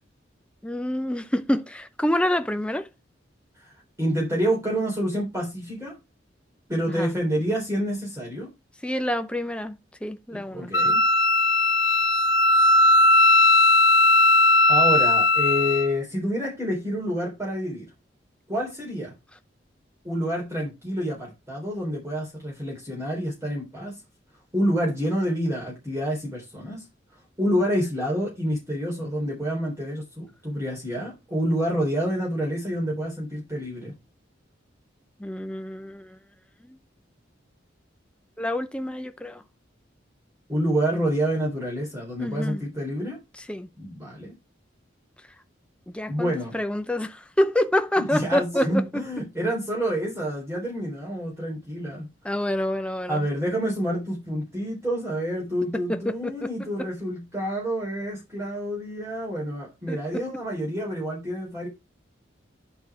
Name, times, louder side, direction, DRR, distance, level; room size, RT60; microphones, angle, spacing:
voice 1, 0.6-2.9 6.9-7.1 8.8-10.7 35.2-36.2 36.6-36.8 38.4-39.4 42.2-42.6 43.4-43.7 45.9-49.2 52.2-53.3 55.9-56.9 59.9-60.2, left 1 dB, 5° left, 0.6 m, -27 dB
voice 2, 3.6-5.9 6.7-8.5 10.3-11.0 14.7-17.9 18.5-19.1 20.0-23.9 24.5-26.8 27.4-33.9 40.5-43.2 43.8-44.3 46.1-46.5 48.0-52.1 53.1-61.7, equal, 15° right, 3.7 m, -28 dB
Wind instrument woodwind instrument, 10.7-15.9, left 2 dB, 80° left, 1.3 m, -18 dB
10.5 x 4.4 x 4.8 m
head